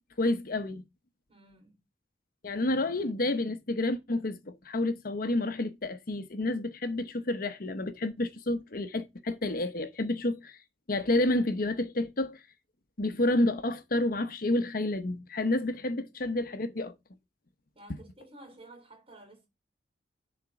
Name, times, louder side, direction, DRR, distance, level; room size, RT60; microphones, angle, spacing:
voice 1, 0.2-0.8 2.4-10.6 10.9-12.4 13.0-16.9, left 2 dB, 55° left, 0.9 m, -29 dB
voice 2, 1.3-1.9 2.6-3.0 15.6-16.1 17.7-19.5, right 1 dB, 30° right, 3.8 m, -53 dB
11.0 x 4.3 x 4.8 m
head